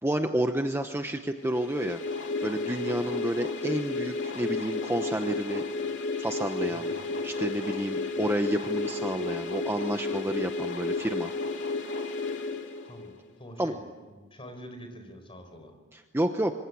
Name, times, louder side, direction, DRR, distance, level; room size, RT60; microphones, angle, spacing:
voice 1, 0.0-2.0 2.4-5.6 6.2-6.9 7.2-11.3 13.6-13.7 15.9-16.5, right 1 dB, 10° right, 6 dB, 0.9 m, -30 dB
sound 1, 1.5-13.3, left 3 dB, 55° left, 2.7 m, -32 dB
voice 2, 6.7-7.2 12.8-15.8, equal, 25° left, 6 dB, 4.6 m, -46 dB
25.5 x 25.0 x 8.5 m, 1.4 s
head